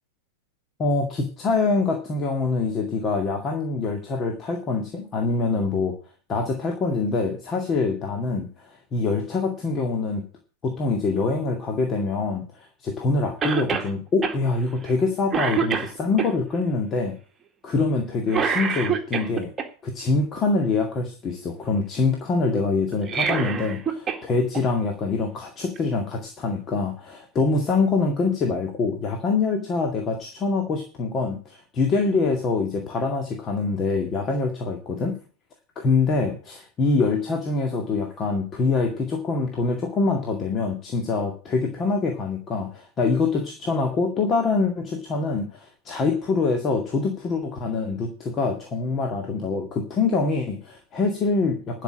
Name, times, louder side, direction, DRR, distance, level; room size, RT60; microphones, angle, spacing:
voice 1, 0.8-5.9 6.3-10.2 10.6-17.2 17.6-19.5 19.8-35.1 35.8-51.8, left 3 dB, 25° left, 3 dB, 2.1 m, -25 dB
Cough, 13.4-13.9 14.2-14.4 14.9-15.0 15.3-16.3 18.3-19.7 22.9-24.2 24.5-24.6 25.8-25.9, right 6 dB, 20° right, 2.0 m, -25 dB
12.0 x 5.9 x 8.8 m, 0.37 s
figure-of-eight pair, 90°, 0 cm